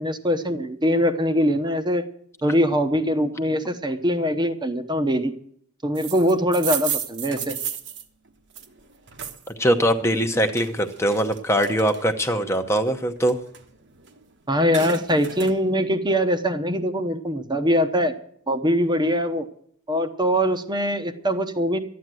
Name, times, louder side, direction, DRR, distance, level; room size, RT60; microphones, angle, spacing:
voice 1, 0.0-2.0 2.4-5.3 5.8-7.6 14.5-18.1 18.5-19.5 19.9-21.8, equal, 20° right, 7 dB, 0.9 m, -22 dB
sound 1, 5.9-9.5 9.9-12.3 12.7-14.2 14.5-15.6, right 8 dB, 55° right, 1.2 m, -33 dB
voice 2, 9.5-13.4, equal, 10° left, 6 dB, 0.8 m, -22 dB
13.0 x 9.5 x 7.6 m, 0.66 s
head